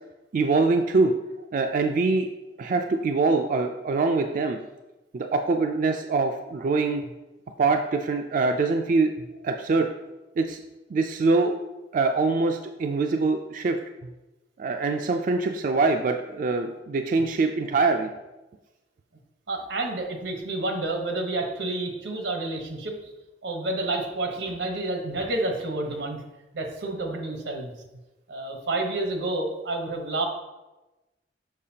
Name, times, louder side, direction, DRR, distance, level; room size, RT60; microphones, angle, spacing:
voice 1, 0.3-1.1 1.5-2.3 2.6-4.6 5.1-7.0 7.6-9.1 9.4-9.9 10.4-10.6 10.9-11.6 11.9-13.8 14.6-18.1, right 3 dB, 50° right, 4 dB, 0.3 m, -24 dB
voice 2, 19.5-23.1 23.4-26.2 26.5-27.7 28.3-30.3, right 2 dB, 90° right, 3 dB, 1.1 m, -29 dB
6.5 x 5.6 x 2.8 m, 1.1 s
head